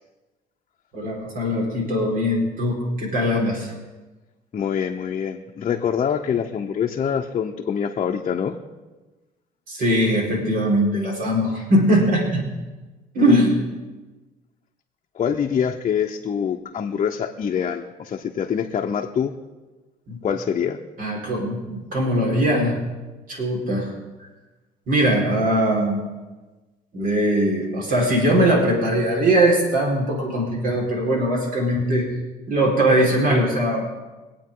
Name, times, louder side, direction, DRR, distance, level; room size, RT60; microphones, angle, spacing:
voice 1, 0.9-3.7 9.7-12.5 13.1-13.6 20.1-20.2 21.0-22.8 23.3-23.9 24.9-26.0 26.9-32.1 32.5-33.9, equal, 55° right, -2 dB, 4.6 m, -20 dB
voice 2, 4.5-8.6 15.1-19.3 20.2-20.8, left 7 dB, 40° left, 0 dB, 0.9 m, -25 dB
24.0 x 8.7 x 3.8 m, 1.2 s
cardioid pair, 110°, 17 cm